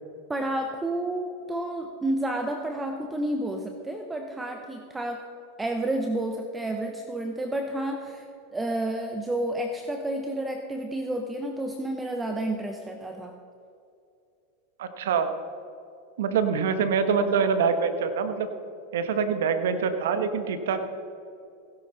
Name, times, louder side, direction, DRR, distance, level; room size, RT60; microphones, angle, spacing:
voice 1, 0.3-5.2 5.6-8.3 8.5-13.4, right 1 dB, 15° right, 5 dB, 0.9 m, -30 dB
voice 2, 14.8-15.3 16.2-18.5 18.9-20.9, right 6 dB, 80° right, 9 dB, 1.2 m, -25 dB
16.5 x 11.0 x 4.0 m, 2.6 s
hypercardioid pair, 110°, 0 cm